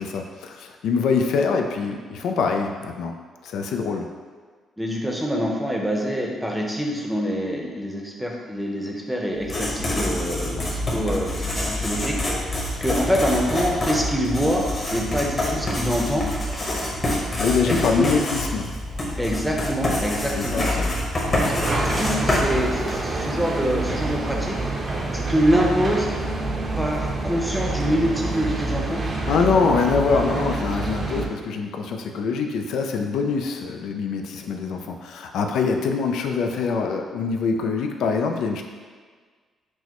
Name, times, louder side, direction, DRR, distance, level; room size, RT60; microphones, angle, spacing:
voice 1, 0.0-4.1 17.4-18.7 20.4-21.3 29.3-38.6, left 5 dB, 80° left, 4 dB, 0.3 m, -24 dB
voice 2, 4.8-16.3 17.7-18.1 19.2-20.9 21.4-24.6 25.1-26.1 26.8-29.0, equal, 5° right, -1 dB, 0.7 m, -25 dB
Writing, 9.4-23.2, left 1 dB, 30° left, 1.1 m, -26 dB
sound 1, 21.2-31.3, right 2 dB, 45° right, 0.6 m, -27 dB
6.1 x 2.1 x 2.9 m, 1.5 s
cardioid pair, 90°, 0 cm